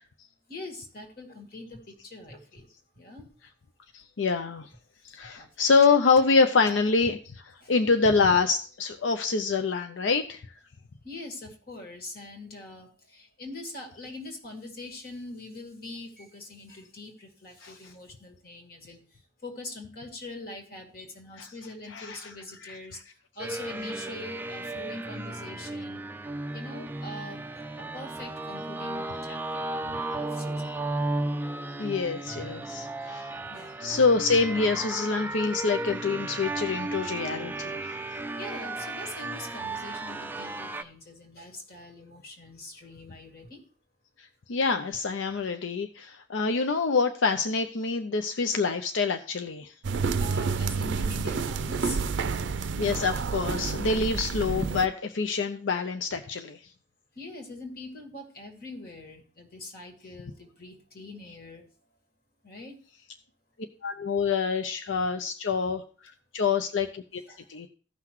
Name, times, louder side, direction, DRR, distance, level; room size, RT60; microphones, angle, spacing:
voice 1, 0.5-2.7 3.0-3.2 5.4-5.5 7.6-7.7 11.0-19.0 19.4-23.0 23.4-26.0 26.5-27.4 27.9-29.7 30.2-30.9 33.5-33.8 38.0-38.1 38.4-43.6 50.1-52.5 57.2-61.6 62.4-62.8 67.3-67.5, left 2 dB, 50° left, 2 dB, 2.2 m, -43 dB
voice 2, 3.9-4.7 5.0-10.4 17.6-17.7 21.9-22.2 22.6-22.8 31.8-33.3 33.8-37.9 44.2-49.7 52.8-56.6 63.8-67.2 67.5-67.7, left 4 dB, 85° left, 7 dB, 0.6 m, -26 dB
sound 1, 23.4-40.8, right 2 dB, 10° right, 0.3 m, -34 dB
sound 2, 49.8-54.9, right 5 dB, 75° right, 0.5 m, -29 dB
15.0 x 5.8 x 3.0 m, 0.40 s
head